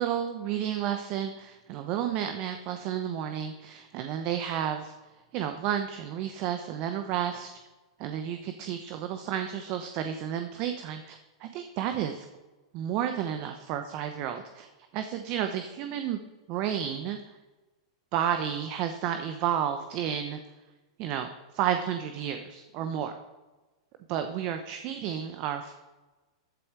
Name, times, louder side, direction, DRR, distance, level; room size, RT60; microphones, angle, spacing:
voice 1, 0.0-4.9 5.3-7.5 8.0-12.3 12.7-14.7 14.9-16.2 16.5-17.2 18.1-20.4 21.0-23.1 24.1-25.7, right 9 dB, 45° right, 8 dB, 1.0 m, -31 dB
14.5 x 8.8 x 4.7 m, 1.2 s
hypercardioid pair, 105°, 2 cm